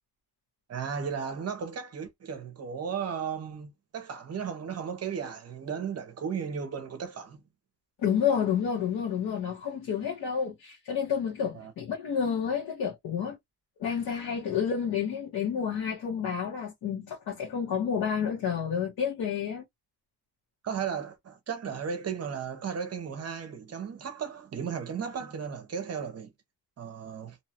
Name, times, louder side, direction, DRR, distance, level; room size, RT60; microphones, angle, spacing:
voice 1, 0.7-7.4 11.5-11.7 20.6-26.3 26.8-27.4, right 7 dB, 40° right, 0.7 m, -35 dB
voice 2, 8.0-13.4 13.8-19.6, left 7 dB, 65° left, 1.1 m, -30 dB
2.8 x 2.2 x 2.7 m
cardioid pair, 175°, 40 cm